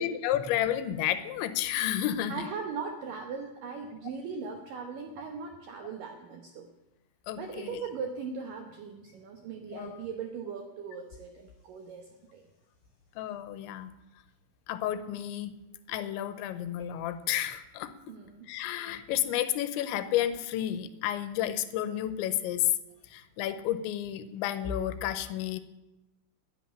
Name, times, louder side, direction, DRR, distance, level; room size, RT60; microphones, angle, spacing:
voice 1, 0.0-2.5 7.3-7.8 9.7-10.0 13.2-13.9 14.7-15.5 15.9-17.9 18.5-22.7 23.1-25.6, left 12 dB, 90° left, 12 dB, 3.1 m, -31 dB
voice 2, 2.3-6.7 7.4-12.4 16.8-16.9 18.1-18.5, right 5 dB, 80° right, 4 dB, 2.0 m, -39 dB
10.5 x 9.1 x 9.9 m, 0.98 s
omnidirectional pair, 5.3 m